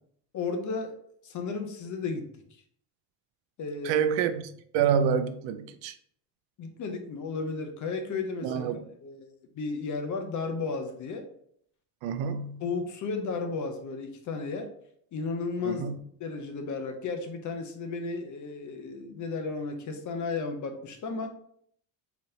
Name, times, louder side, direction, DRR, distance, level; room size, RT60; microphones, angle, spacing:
voice 1, 0.3-0.9 1.2-2.3 3.6-4.0 6.6-9.3 9.6-11.2 12.6-14.7 15.1-15.9 16.2-21.3, left 4 dB, 45° left, 0.7 m, -34 dB
voice 2, 3.8-5.9 8.4-8.8 12.0-12.6 15.6-16.0, right 7 dB, 85° right, 0.6 m, -27 dB
4.0 x 3.4 x 2.7 m
cardioid pair, 145°, 43 cm